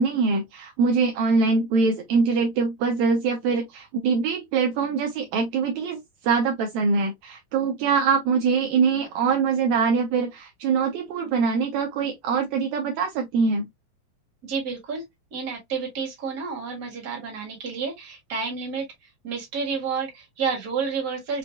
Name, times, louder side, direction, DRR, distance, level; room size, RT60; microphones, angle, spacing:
voice 1, 0.0-13.7, right 5 dB, 75° right, 1.9 m, -23 dB
voice 2, 14.4-15.0 15.3-18.8 19.2-21.4, right 5 dB, 35° right, 1.7 m, -30 dB
6.0 x 2.4 x 2.2 m
omnidirectional pair, 3.6 m